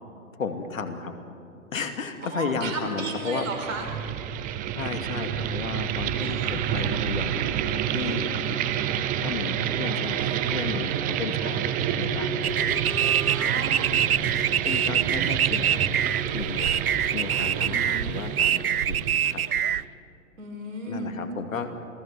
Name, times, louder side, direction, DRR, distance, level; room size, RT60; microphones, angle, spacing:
voice 1, 0.3-1.1 1.7-3.5 4.7-7.5 7.9-8.7 9.2-12.5 14.6-15.8 16.3-16.8 17.1-19.4 20.8-21.7, left 5 dB, 65° left, 6 dB, 2.7 m, -33 dB
voice 2, 2.2-3.9 6.2-6.6 9.9-10.5 13.3-14.0 17.6-18.2 20.4-21.2, right 3 dB, 65° right, 5 dB, 5.2 m, -35 dB
sound 1, 3.1-19.8, right 9 dB, 20° right, 1.0 m, -29 dB
sound 2, 12.4-19.8, right 9 dB, 90° right, 0.6 m, -25 dB
28.0 x 19.0 x 7.6 m, 2.5 s
hypercardioid pair, 125°, 42 cm